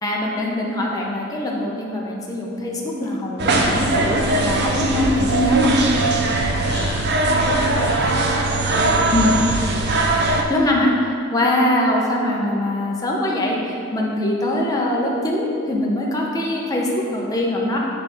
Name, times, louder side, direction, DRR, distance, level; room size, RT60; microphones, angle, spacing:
voice 1, 0.0-5.7 9.1-9.3 10.5-10.9 11.3-17.8, left 1 dB, 15° left, -3 dB, 0.8 m, -22 dB
sound 1, 3.4-10.4, right 2 dB, 50° right, 0.6 m, -20 dB
voice 2, 6.6-7.1 7.5-8.2 8.5-9.2, left 3 dB, 80° left, 2 dB, 0.6 m, -32 dB
9.4 x 4.0 x 3.6 m, 2.6 s
head